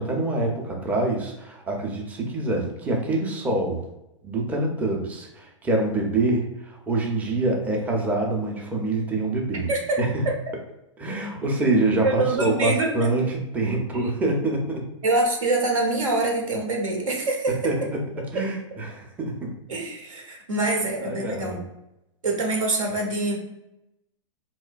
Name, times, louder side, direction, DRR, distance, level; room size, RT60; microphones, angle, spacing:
voice 1, 0.0-3.8 4.2-9.7 10.0-10.3 11.0-14.9 17.6-18.0 18.3-19.5 21.0-21.6, right 2 dB, 10° right, 0 dB, 0.5 m, -25 dB
voice 2, 9.7-10.0 12.0-12.9 13.9-14.1 15.0-17.7 19.7-21.6 22.2-23.4, right 2 dB, 85° right, 1 dB, 0.8 m, -25 dB
2.7 x 2.1 x 2.4 m, 0.90 s
hypercardioid pair, 115°, 17 cm